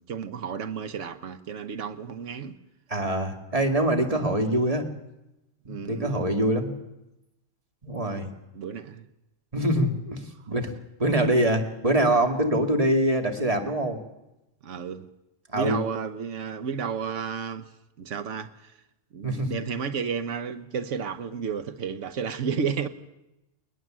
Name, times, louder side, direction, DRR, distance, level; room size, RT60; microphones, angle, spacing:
voice 1, 0.0-2.5 4.2-4.3 5.7-6.2 8.5-9.0 14.6-15.1 15.5-17.7 18.0-18.7 19.1-22.9, right 6 dB, 75° right, 1.4 m, -32 dB
voice 2, 2.9-4.9 5.7-6.7 7.8-8.3 9.5-10.2 10.5-10.7 11.0-14.0 15.5-15.8 19.2-19.5, right 1 dB, 30° right, 2.3 m, -24 dB
21.5 x 20.5 x 7.5 m
omnidirectional pair, 1.3 m